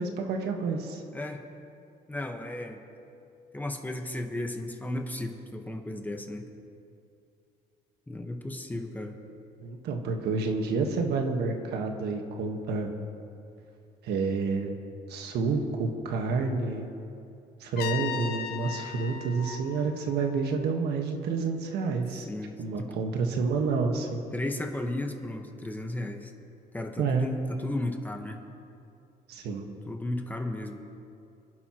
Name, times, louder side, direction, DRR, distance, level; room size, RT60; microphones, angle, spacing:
voice 1, 0.0-1.0 9.6-12.9 14.0-14.7 15.1-16.9 17.6-22.3 22.6-24.2 27.0-27.3 29.3-29.7, right 4 dB, 75° right, 3 dB, 1.5 m, -29 dB
voice 2, 1.1-1.4 2.1-2.8 3.5-6.4 8.1-9.2 22.1-23.0 24.3-26.3 26.7-28.4 29.9-30.8, left 1 dB, 10° left, 4 dB, 1.3 m, -34 dB
Trumpet, 17.8-20.7, left 10 dB, 70° left, 0.9 m, -37 dB
27.0 x 11.0 x 3.0 m, 2.6 s
cardioid pair, 110°, 17 cm